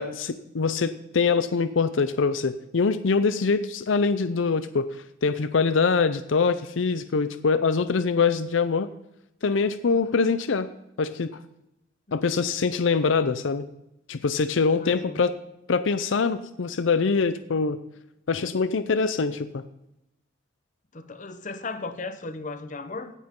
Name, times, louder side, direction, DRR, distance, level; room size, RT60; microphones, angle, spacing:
voice 1, 0.0-4.9 5.2-8.9 9.4-10.7 11.0-11.4 12.1-13.7 14.1-15.3 15.7-17.8 18.3-19.6, left 4 dB, 75° left, 12 dB, 0.6 m, -24 dB
voice 2, 14.8-15.2 20.9-23.1, left 3 dB, 40° left, 10 dB, 0.8 m, -36 dB
16.5 x 9.4 x 3.7 m, 0.87 s
head